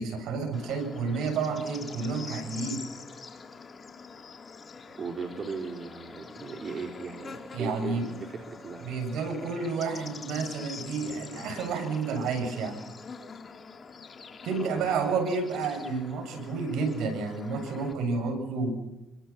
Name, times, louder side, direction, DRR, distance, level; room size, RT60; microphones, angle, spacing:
voice 1, 0.0-2.8 7.5-8.1 8.8-12.8 14.4-18.7, right 4 dB, 85° right, 5 dB, 7.5 m, -30 dB
Bird / Insect, 0.5-17.9, left 5 dB, 40° left, 3.3 m, -45 dB
voice 2, 5.0-8.9 14.5-15.2, right 4 dB, 50° right, 4 dB, 3.7 m, -38 dB
27.0 x 25.0 x 6.0 m, 0.93 s
cardioid pair, 90°, 0 cm